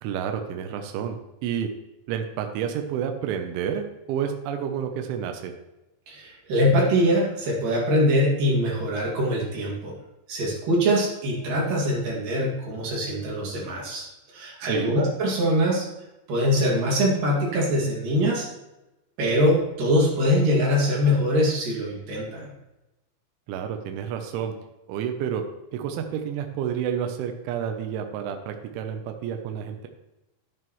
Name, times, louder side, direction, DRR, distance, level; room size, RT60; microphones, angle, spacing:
voice 1, 0.0-1.2 1.4-1.7 2.1-5.5 14.6-15.0 23.5-24.5 24.9-25.4 25.7-29.9, right 8 dB, 80° right, 5 dB, 3.2 m, -30 dB
voice 2, 6.1-9.9 10.3-14.1 14.3-15.9 16.3-18.5 19.2-22.5, equal, 50° right, -3 dB, 3.4 m, -23 dB
11.0 x 9.1 x 3.1 m, 0.97 s
omnidirectional pair, 5.5 m